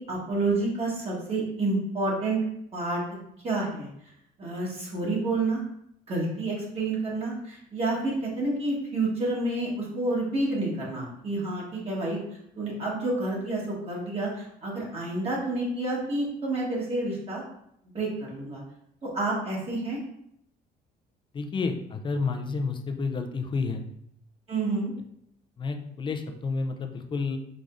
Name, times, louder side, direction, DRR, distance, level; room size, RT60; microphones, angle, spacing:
voice 1, 0.0-2.4 2.7-3.0 3.4-3.9 4.4-5.6 6.1-12.2 12.5-17.4 17.9-18.6 19.0-20.0 24.5-24.9, right 2 dB, 35° right, -5 dB, 1.5 m, -29 dB
voice 2, 21.3-23.9 25.6-27.4, left 4 dB, 30° left, 5 dB, 0.5 m, -30 dB
4.9 x 3.4 x 2.6 m, 0.74 s
cardioid pair, 110°, 17 cm